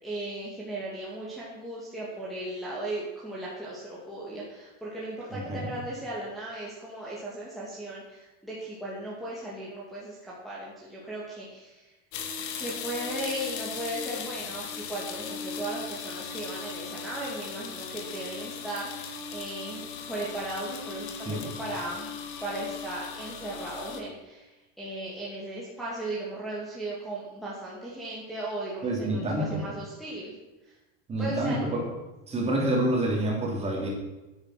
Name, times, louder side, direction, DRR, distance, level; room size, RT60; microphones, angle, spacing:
voice 1, 0.0-11.9 12.5-30.3 30.6-30.7 31.2-31.8, right 1 dB, ahead, -8 dB, 2.4 m, -37 dB
voice 2, 5.3-5.7 21.2-21.4 28.8-29.7 31.1-31.8 32.3-33.9, right 1 dB, 15° right, -2 dB, 3.3 m, -28 dB
sound 1, 12.1-24.0, left 6 dB, 65° left, 2.3 m, -38 dB
15.0 x 9.8 x 6.0 m, 1.1 s
cardioid pair, 180°, 36 cm